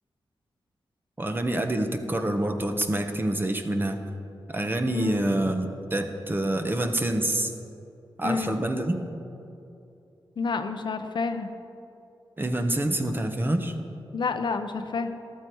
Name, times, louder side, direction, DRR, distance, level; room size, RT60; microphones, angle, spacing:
voice 1, 1.2-4.0 4.5-7.5 8.2-9.0 12.4-13.7, right 1 dB, 25° right, 6 dB, 1.1 m, -27 dB
voice 2, 4.9-5.3 8.2-8.6 10.4-11.5 14.1-15.1, left 4 dB, 65° left, 8 dB, 0.8 m, -29 dB
14.0 x 12.5 x 4.7 m, 2.7 s
wide cardioid pair, 85°, 9 cm